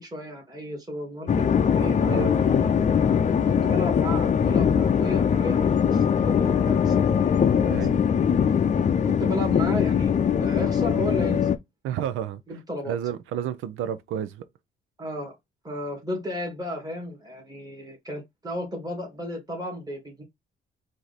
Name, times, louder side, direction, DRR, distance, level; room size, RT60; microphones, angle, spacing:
voice 1, 0.0-2.7 3.5-7.3 7.6-7.8 9.0-11.5 12.5-13.0 15.0-15.4 15.6-20.2, equal, 20° right, 2.3 m, -34 dB
sound 1, 1.3-11.6, left 7 dB, 40° left, 0.6 m, -21 dB
voice 2, 2.0-2.3 7.7-7.9 11.8-12.4 12.9-14.5, right 9 dB, 85° right, 0.6 m, -30 dB
4.6 x 2.8 x 4.1 m
cardioid pair, 90°, 20 cm